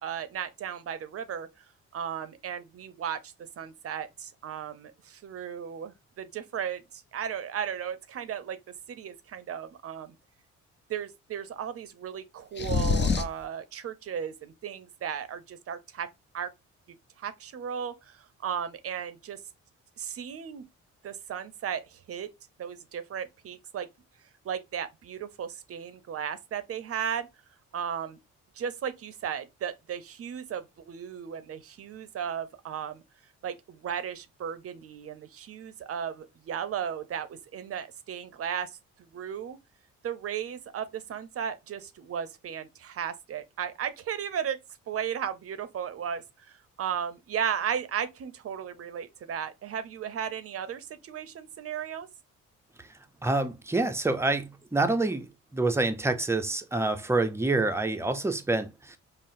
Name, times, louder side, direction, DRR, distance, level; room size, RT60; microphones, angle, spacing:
voice 1, 0.0-8.6 8.9-10.1 10.9-16.1 16.3-16.5 16.9-19.4 20.0-20.7 21.0-22.3 22.6-23.9 24.2-27.3 27.7-28.2 28.5-33.0 33.4-39.6 40.0-44.6 44.9-52.1, right 8 dB, 50° right, 0.6 m, -35 dB
sound 1, 12.6-13.4, left 5 dB, 35° left, 0.6 m, -25 dB
voice 2, 52.8-59.0, right 2 dB, 10° right, 0.5 m, -27 dB
5.5 x 2.0 x 2.5 m
cardioid pair, 90°, 30 cm